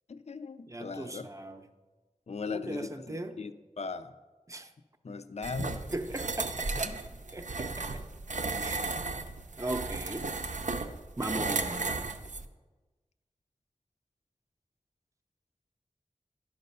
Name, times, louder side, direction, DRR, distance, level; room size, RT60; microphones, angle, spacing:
voice 1, 0.1-1.3 2.3-3.5 3.8-4.1 5.0-5.8 6.8-7.0, left 4 dB, 55° left, 11 dB, 0.4 m, -38 dB
voice 2, 0.7-1.6 2.5-3.4 4.5-4.7 5.9-6.7 7.3-8.0 8.6-8.9 9.6-10.3 11.2-12.0, right 1 dB, 25° right, 7 dB, 0.6 m, -38 dB
sound 1, 5.4-12.5, right 3 dB, 70° right, 0.6 m, -34 dB
11.0 x 5.4 x 5.4 m, 1.3 s
wide cardioid pair, 45°, 13 cm